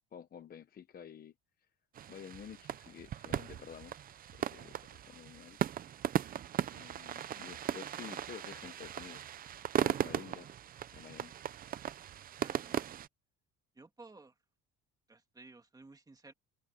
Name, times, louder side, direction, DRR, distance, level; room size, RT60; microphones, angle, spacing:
voice 1, 0.1-1.3 2.1-4.0 4.3-5.6 6.7-9.3 9.8-10.5 10.9-11.3, left 8 dB, 25° left, 0.8 m, -50 dB
sound 1, 1.9-13.1, right 10 dB, 25° right, 0.3 m, -38 dB
voice 2, 12.4-13.0 13.7-14.4 15.1-16.3, right 3 dB, 10° right, 2.0 m, -56 dB
cardioid pair, 175°, 34 cm